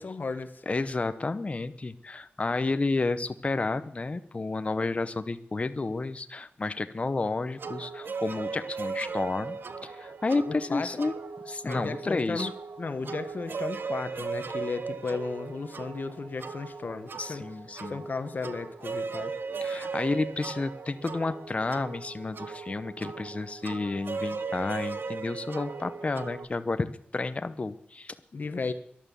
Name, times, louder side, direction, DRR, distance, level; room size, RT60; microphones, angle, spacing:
voice 1, 0.0-0.6 10.5-11.0 11.6-12.5 12.8-17.4 17.9-19.3 28.3-28.7, left 4 dB, 55° left, 10 dB, 1.3 m, -34 dB
voice 2, 0.7-11.1 11.5-12.5 17.2-18.0 19.6-28.1, left 3 dB, 35° left, 11 dB, 0.8 m, -31 dB
sound 1, 7.6-26.4, right 5 dB, 70° right, 1.0 m, -37 dB
13.0 x 11.5 x 6.9 m, 0.69 s
wide cardioid pair, 100°, 4 cm